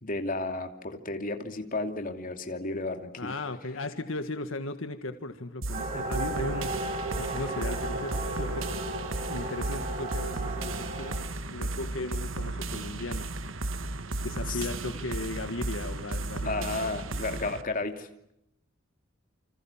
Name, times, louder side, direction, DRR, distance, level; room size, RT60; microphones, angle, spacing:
voice 1, 0.0-3.3 14.5-14.7 16.4-18.1, left 2 dB, 45° left, 5 dB, 2.8 m, -33 dB
voice 2, 3.2-8.9 9.3-11.2 11.5-13.3 14.2-16.9, left 2 dB, 75° left, 8 dB, 1.7 m, -37 dB
sound 1, 5.6-17.6, right 2 dB, 75° right, 1.6 m, -34 dB
sound 2, 5.7-11.2, right 2 dB, 40° right, 7.0 m, -35 dB
29.0 x 26.5 x 7.3 m, 0.78 s
head